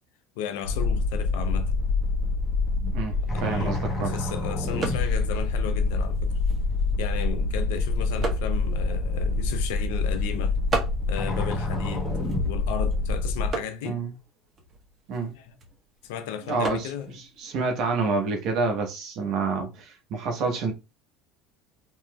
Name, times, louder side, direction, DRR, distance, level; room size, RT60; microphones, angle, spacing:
voice 1, 0.4-1.7 3.3-6.3 7.0-10.6 11.1-14.0 15.3-15.6 16.0-17.1, left 9 dB, 80° left, 0.4 m, -35 dB
sound 1, 0.6-13.5, left 3 dB, 25° left, 1.1 m, -26 dB
voice 2, 2.8-4.1 13.8-14.1 15.1-15.3 16.5-20.7, right 4 dB, 60° right, 0.9 m, -28 dB
sound 2, 3.3-18.8, right 4 dB, 35° right, 1.0 m, -40 dB
3.0 x 3.0 x 2.2 m
hypercardioid pair, 85°, 0 cm